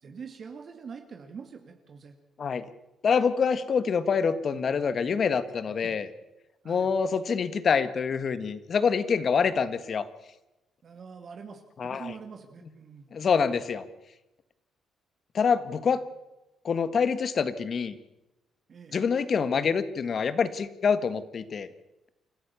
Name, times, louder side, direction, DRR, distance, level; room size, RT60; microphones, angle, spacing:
voice 1, 0.0-2.2 5.8-5.9 6.6-6.9 10.8-13.1 18.7-19.0, right 6 dB, 50° right, 4 dB, 2.2 m, -44 dB
voice 2, 3.0-6.1 6.6-10.1 11.8-12.1 13.1-13.8 15.3-16.0 16.6-17.9 18.9-21.7, left 6 dB, 50° left, 13 dB, 1.5 m, -26 dB
29.0 x 13.0 x 7.0 m, 0.97 s
cardioid pair, 90°, 0 cm